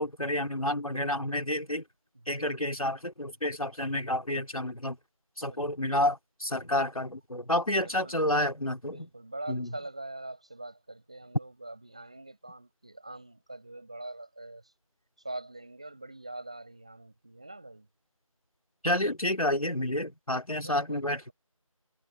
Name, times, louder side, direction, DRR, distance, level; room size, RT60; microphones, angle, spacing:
voice 1, 0.0-1.8 2.3-5.0 5.4-9.1 9.5-9.7 18.8-21.3, left 1 dB, 80° left, 2.5 m, -29 dB
voice 2, 2.1-2.7 5.4-6.0 7.8-8.2 8.8-14.7 15.2-17.9 20.5-21.3, right 2 dB, 10° right, 6.7 m, -44 dB
figure-of-eight pair, 180°, 18 cm